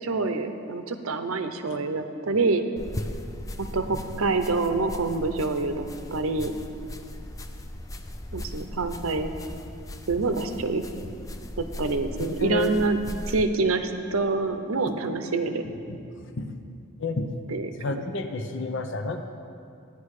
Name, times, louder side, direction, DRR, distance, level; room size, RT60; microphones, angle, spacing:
voice 1, 0.0-2.6 3.6-6.5 8.3-9.3 10.1-10.8 11.6-13.0 13.2-15.6 17.5-18.0, right 3 dB, 75° right, 8 dB, 0.8 m, -26 dB
sound 1, 2.8-13.5, left 1 dB, 15° left, 0.4 m, -38 dB
voice 2, 12.4-12.7 15.9-16.0 16.4-16.6 17.0-17.3 17.8-19.2, left 2 dB, 55° left, 7 dB, 0.7 m, -30 dB
13.0 x 9.7 x 4.9 m, 2.5 s
head